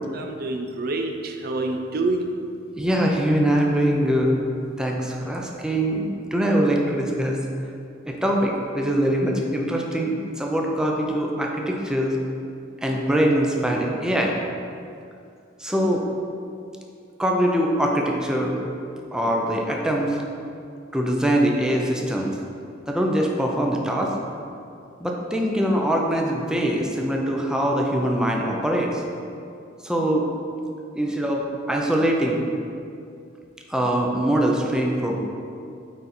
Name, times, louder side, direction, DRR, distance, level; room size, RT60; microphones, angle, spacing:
voice 1, 0.1-2.3, right 2 dB, 55° right, 4 dB, 0.5 m, -27 dB
voice 2, 2.7-4.4 4.8-7.4 8.1-12.2 12.8-14.4 15.6-16.0 17.2-18.6 19.1-20.2 20.9-22.4 22.9-24.1 25.0-29.0 29.8-30.3 30.9-32.4 33.7-35.2, right 1 dB, 5° right, -1 dB, 0.6 m, -23 dB
8.8 x 4.1 x 4.3 m, 2.5 s
head